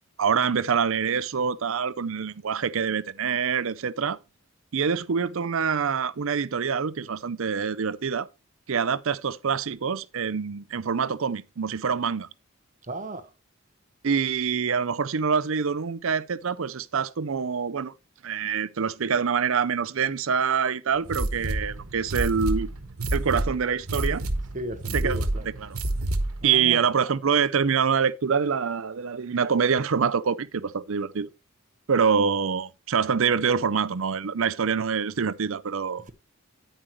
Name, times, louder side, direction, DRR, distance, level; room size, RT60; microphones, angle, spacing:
voice 1, 0.2-4.2 4.7-8.3 8.7-12.3 14.0-17.9 18.2-22.7 23.1-24.2 24.9-25.2 25.4-25.8 26.4-31.3 31.9-36.1, right 6 dB, 70° right, 0.6 m, -25 dB
voice 2, 12.9-13.2 24.5-25.5 26.4-26.8, right 1 dB, 35° right, 1.0 m, -35 dB
sound 1, 21.0-26.5, right 1 dB, 85° right, 1.3 m, -29 dB
10.0 x 9.1 x 3.1 m
head